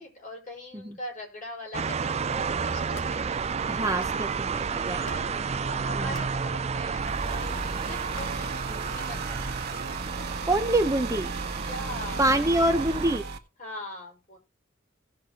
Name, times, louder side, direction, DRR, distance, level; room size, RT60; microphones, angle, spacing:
voice 1, 0.0-3.7 5.0-9.7 11.6-12.9 13.6-14.4, left 1 dB, 40° left, 1 dB, 5.1 m, -42 dB
sound 1, 1.7-13.2, right 5 dB, 35° right, 0.5 m, -31 dB
sound 2, 2.8-3.1 3.8-4.3 5.0-5.4 6.1-6.4 7.1-7.3 8.2-8.3, left 2 dB, 75° left, 2.7 m, -46 dB
voice 2, 3.7-5.1 5.9-6.2 10.5-11.3 12.2-13.2, right 1 dB, 15° right, 6 dB, 0.9 m, -26 dB
sound 3, 6.9-13.4, right 3 dB, 55° right, 1.6 m, -35 dB
17.5 x 6.9 x 3.0 m, 0.26 s
head